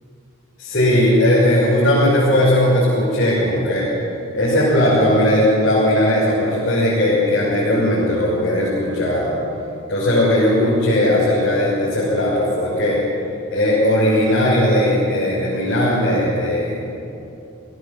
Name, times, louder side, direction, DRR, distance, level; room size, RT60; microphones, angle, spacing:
voice 1, 0.6-3.9 4.3-9.3 9.9-13.0 13.5-16.8, left 1 dB, 50° left, -6 dB, 5.8 m, -17 dB
27.5 x 17.5 x 7.3 m, 2.8 s
head